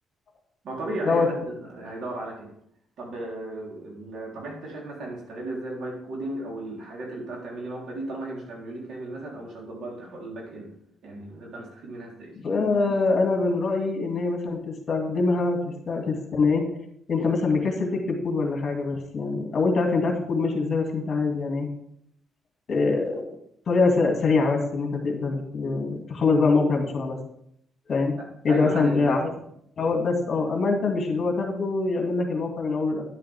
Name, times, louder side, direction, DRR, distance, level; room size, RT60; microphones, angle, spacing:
voice 1, 0.6-2.5 3.0-10.7 11.0-12.3 28.2-29.1, right 1 dB, 65° right, -2 dB, 3.7 m, -35 dB
voice 2, 12.4-16.7 17.1-21.7 22.7-23.2 23.7-27.2 27.9-28.1 28.4-29.3 29.8-33.0, left 3 dB, 50° left, 2 dB, 2.2 m, -24 dB
11.0 x 7.6 x 3.5 m, 0.72 s
cardioid pair, 90°, 0 cm